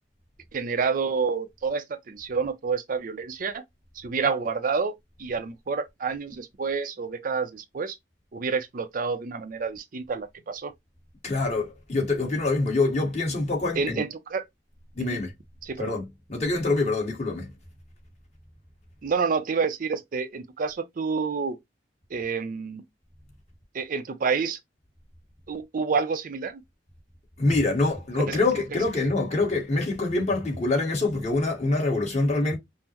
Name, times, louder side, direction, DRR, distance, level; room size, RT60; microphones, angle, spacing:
voice 1, 0.5-3.6 4.0-4.9 5.2-8.0 8.3-10.7 13.8-14.4 15.0-15.2 15.6-15.9 19.0-21.6 22.1-22.8 23.7-24.6 25.5-26.6 28.3-28.4 29.0-29.1, right 5 dB, 50° right, 0.5 m, -28 dB
voice 2, 11.2-14.0 14.9-15.3 15.8-17.5 27.4-32.6, left 2 dB, 40° left, 1.4 m, -25 dB
5.4 x 2.0 x 2.9 m
head